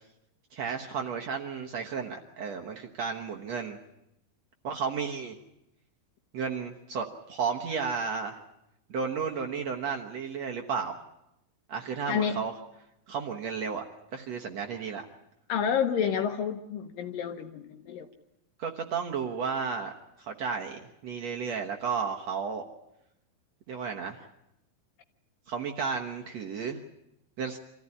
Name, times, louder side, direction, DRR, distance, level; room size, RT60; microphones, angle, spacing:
voice 1, 0.5-3.8 4.6-5.4 6.3-8.4 8.9-11.0 11.7-12.5 13.1-13.8 14.1-15.0 18.6-22.6 23.7-24.2 25.5-26.8 27.4-27.6, right 6 dB, 65° right, 2 dB, 1.8 m, -33 dB
voice 2, 12.1-12.4 15.5-18.1, left 7 dB, 70° left, 6 dB, 2.5 m, -29 dB
26.0 x 15.0 x 9.8 m, 0.86 s
omnidirectional pair, 4.5 m